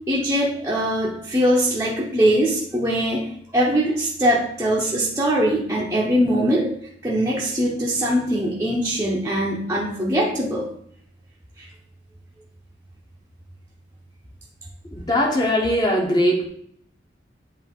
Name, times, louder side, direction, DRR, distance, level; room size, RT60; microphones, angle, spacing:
voice 1, 0.1-6.7 7.0-10.7 11.6-11.7, equal, 15° right, -5 dB, 0.8 m, -22 dB
voice 2, 14.9-16.5, equal, 25° left, -1 dB, 1.1 m, -20 dB
7.7 x 2.8 x 4.6 m, 0.65 s
head